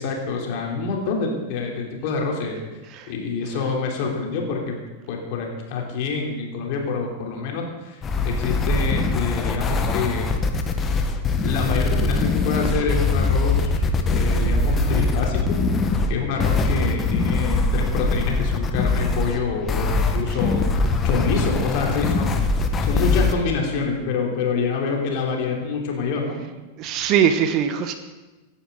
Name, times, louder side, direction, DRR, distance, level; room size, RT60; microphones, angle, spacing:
voice 1, 0.0-2.6 3.1-4.8 5.1-10.3 11.4-15.6 16.1-20.6 21.0-22.3 22.8-26.4, left 4 dB, 45° left, 0 dB, 3.7 m, -26 dB
sound 1, 8.0-23.3, left 3 dB, 25° left, 1.5 m, -22 dB
voice 2, 26.8-27.9, right 8 dB, 40° right, 9 dB, 1.3 m, -21 dB
25.5 x 11.0 x 4.0 m, 1.2 s
figure-of-eight pair, 90°, 0 cm